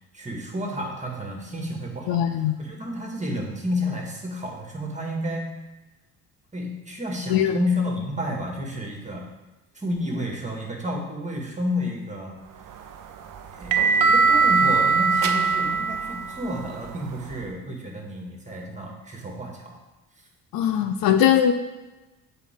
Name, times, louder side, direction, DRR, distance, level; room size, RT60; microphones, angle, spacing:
voice 1, 0.1-5.5 6.5-9.3 9.7-12.4 13.5-19.8, left 1 dB, 20° right, 0 dB, 2.1 m, -31 dB
voice 2, 2.1-2.5 7.3-7.6 20.5-21.5, left 10 dB, 60° left, 8 dB, 0.6 m, -20 dB
sound 1, 12.6-17.4, right 4 dB, 50° right, 0.7 m, -22 dB
8.0 x 4.5 x 3.8 m, 1.1 s
hypercardioid pair, 55°, 40 cm